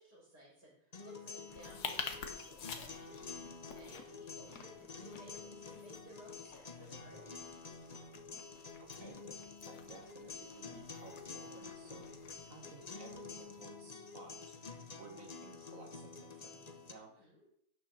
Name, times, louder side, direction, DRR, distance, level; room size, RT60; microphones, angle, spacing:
voice 1, 0.0-3.4 3.7-7.5 17.2-17.4, right 1 dB, 85° right, -10 dB, 5.4 m, -58 dB
sound 1, 0.9-16.9, left 4 dB, 35° left, 0.7 m, -49 dB
sound 2, 1.5-13.6, left 6 dB, 75° left, 1.6 m, -50 dB
voice 2, 8.8-12.1 12.4-14.7 15.0-17.3, right 3 dB, 55° right, 3 dB, 1.6 m, -56 dB
12.5 x 9.1 x 4.1 m, 0.73 s
omnidirectional pair, 1.7 m